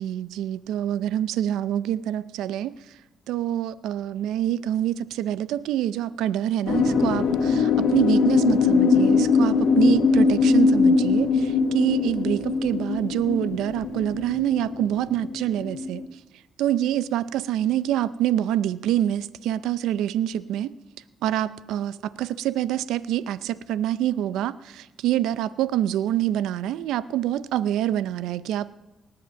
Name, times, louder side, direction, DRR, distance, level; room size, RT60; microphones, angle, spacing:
voice 1, 0.0-3.0 3.3-16.0 16.6-20.7 21.2-28.7, right 11 dB, 90° right, 17 dB, 0.5 m, -26 dB
sound 1, 6.7-16.0, left 4 dB, 75° left, 1.5 m, -21 dB
18.5 x 7.8 x 6.9 m, 1.1 s
cardioid pair, 90°, 0 cm